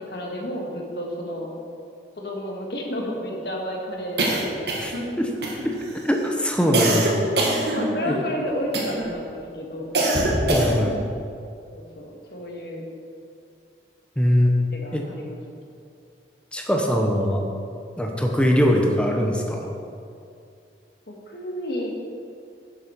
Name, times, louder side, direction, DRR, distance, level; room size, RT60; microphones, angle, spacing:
voice 1, 0.0-1.5 2.2-4.7 7.5-10.0 11.7-12.8 14.4-15.4 21.1-21.9, equal, 65° left, -1 dB, 1.8 m, -31 dB
sound 1, 4.2-5.1 5.4-5.9 6.7-8.2 8.7-9.2 9.9-11.0, right 1 dB, 70° right, 1.7 m, -23 dB
voice 2, 4.8-5.3 5.6-5.8 6.0-7.2 7.5-7.7 8.1-8.2 10.5-10.9 14.2-14.5 14.9-15.0 16.5-17.4 18.0-19.7, equal, 5° left, 1 dB, 0.9 m, -22 dB
11.5 x 7.5 x 4.6 m, 2.4 s
head